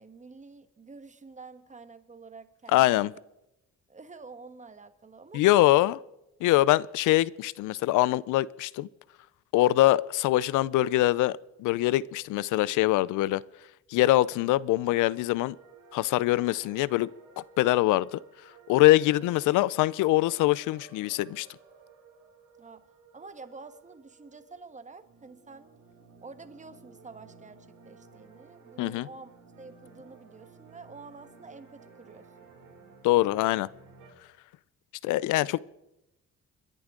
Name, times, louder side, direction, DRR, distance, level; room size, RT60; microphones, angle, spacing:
voice 1, 0.0-3.1 3.9-5.4 5.8-5.9 19.0-19.2 22.6-22.8 23.1-25.7 26.2-29.3 29.6-32.3 35.4-35.6, right 4 dB, 25° right, 10 dB, 1.4 m, -48 dB
voice 2, 2.7-3.1 5.3-6.0 6.4-8.9 9.5-13.4 13.9-15.6 15.9-17.1 17.4-18.2 18.7-21.5 28.8-29.1 33.0-33.7 35.0-35.6, left 16 dB, 90° left, 22 dB, 0.5 m, -23 dB
sound 1, 15.5-34.1, right 5 dB, 75° right, 4.3 m, -55 dB
29.5 x 11.0 x 3.8 m, 0.91 s
cardioid pair, 90°, 30 cm